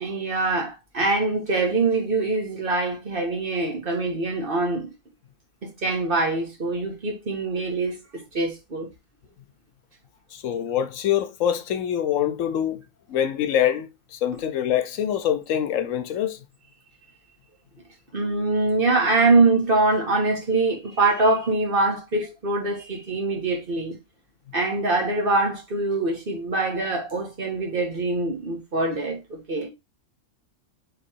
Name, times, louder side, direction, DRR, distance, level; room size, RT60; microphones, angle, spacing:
voice 1, 0.0-4.9 5.6-8.9 18.1-24.0 24.5-29.7, right 3 dB, 45° right, 1.4 m, -24 dB
voice 2, 10.3-12.8 13.1-16.4, left 10 dB, 85° left, 1.1 m, -25 dB
3.8 x 3.2 x 4.3 m
omnidirectional pair, 1.3 m